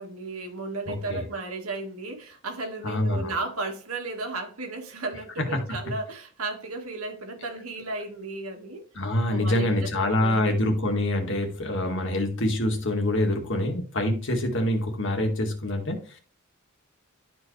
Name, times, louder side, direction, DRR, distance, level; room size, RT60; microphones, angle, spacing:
voice 1, 0.0-8.9 9.3-10.6 11.9-12.3, right 3 dB, 85° right, 1.9 m, -34 dB
voice 2, 0.9-1.2 2.8-3.3 5.5-5.6 9.0-16.2, left 1 dB, 60° left, 1.9 m, -26 dB
12.0 x 4.7 x 3.3 m
head